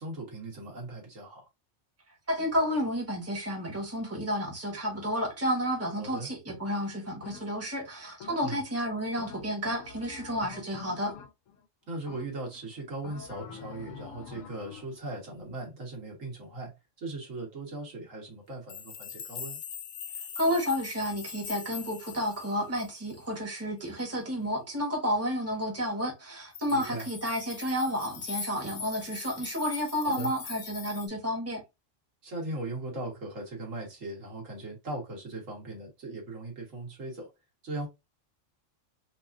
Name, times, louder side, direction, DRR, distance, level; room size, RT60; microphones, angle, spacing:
voice 1, 0.0-1.5 5.9-6.3 8.4-8.6 11.9-19.6 26.7-27.1 30.0-30.3 32.2-37.3 37.6-37.9, right 2 dB, 90° right, 2.0 m, -39 dB
voice 2, 2.3-11.1 20.4-31.6, equal, 10° right, 1.2 m, -31 dB
sound 1, 7.2-7.7 8.2-8.7 9.2-11.6 12.1-12.6 13.0-15.0, left 7 dB, 85° left, 1.1 m, -46 dB
sound 2, 18.7-23.2 26.5-31.1, left 7 dB, 55° left, 0.6 m, -42 dB
4.5 x 2.5 x 2.5 m
omnidirectional pair, 1.3 m